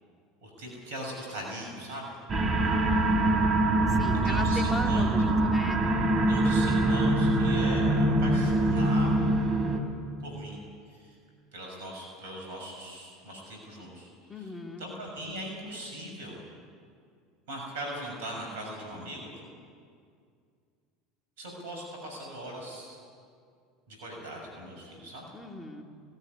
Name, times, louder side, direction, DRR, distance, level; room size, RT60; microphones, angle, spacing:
voice 1, 0.4-2.2 3.9-5.1 6.3-9.5 10.2-10.6 10.9-11.1 11.5-14.5 14.8-16.4 17.5-19.3 21.4-23.0 23.9-25.2, right 1 dB, 70° right, 0 dB, 6.6 m, -40 dB
sound 1, 2.3-9.8, right 2 dB, 35° right, 3.4 m, -24 dB
voice 2, 3.9-5.8 14.3-14.9 25.3-25.8, left 1 dB, 15° left, 2 dB, 2.9 m, -37 dB
19.0 x 15.5 x 9.9 m, 2.2 s
hypercardioid pair, 75°, 0 cm